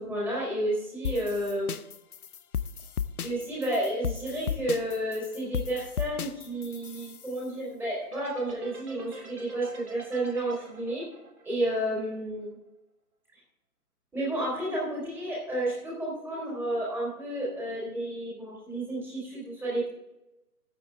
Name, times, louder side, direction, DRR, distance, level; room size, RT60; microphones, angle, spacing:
voice 1, 0.0-1.7 3.2-11.0 11.4-12.5 14.1-19.9, right 1 dB, 5° right, -5 dB, 3.9 m, -31 dB
sound 1, 1.0-7.4, left 8 dB, 70° left, 0.7 m, -35 dB
sound 2, 8.0-12.4, right 2 dB, 65° right, 3.8 m, -47 dB
14.5 x 8.1 x 3.5 m, 0.91 s
figure-of-eight pair, 145°, 47 cm